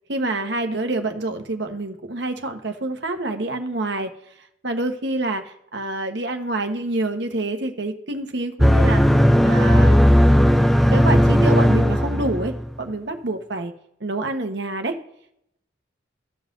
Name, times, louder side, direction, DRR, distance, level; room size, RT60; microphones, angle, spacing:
voice 1, 0.1-4.1 4.6-9.0 9.4-10.0 10.7-13.7 14.0-14.9, right 2 dB, 65° right, 5 dB, 1.1 m, -27 dB
sound 1, 8.6-12.7, equal, ahead, 0.4 m, -16 dB
16.5 x 5.5 x 2.6 m, 0.75 s
head